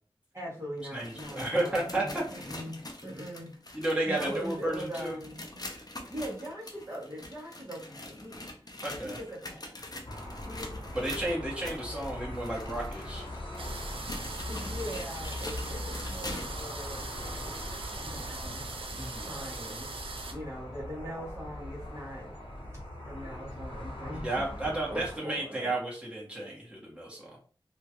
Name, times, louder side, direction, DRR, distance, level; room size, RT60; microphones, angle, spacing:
voice 1, 0.3-3.6 4.1-5.4 6.1-8.4 9.0-9.8 10.4-11.0 14.5-17.2 18.0-18.7 19.2-19.9 20.3-22.3 23.0-24.3 24.9-25.8, equal, 30° right, -5 dB, 1.2 m, -41 dB
sound 1, 0.8-16.7 17.1-17.3 18.0-18.1 19.0-19.1, left 1 dB, 45° left, 0.6 m, -44 dB
voice 2, 0.9-2.4 3.7-5.1 8.8-9.2 10.9-13.2 19.0-19.3 24.1-27.3, right 1 dB, 10° right, -5 dB, 1.3 m, -32 dB
sound 2, 10.1-25.2, left 1 dB, 70° left, 1.0 m, -41 dB
sound 3, 13.6-20.3, right 3 dB, 85° right, 0.4 m, -41 dB
2.8 x 2.4 x 2.9 m, 0.41 s
wide cardioid pair, 40°, 9 cm